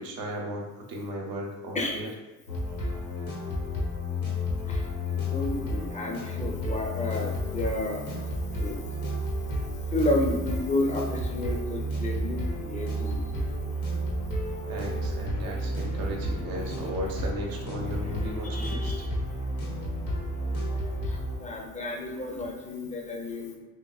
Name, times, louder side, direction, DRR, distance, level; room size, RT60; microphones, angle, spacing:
voice 1, 0.0-2.1 14.7-18.9, equal, 50° right, 0 dB, 0.9 m, -36 dB
sound 1, 2.5-21.4, equal, 70° left, 1.1 m, -31 dB
voice 2, 4.6-8.3 8.6-8.8 9.7-14.0 14.2-16.0 16.4-17.1 17.4-17.5 17.8-19.6 20.4-23.6, left 2 dB, 15° left, 0 dB, 0.7 m, -33 dB
3.6 x 2.9 x 2.3 m, 1.2 s
hypercardioid pair, 55°, 44 cm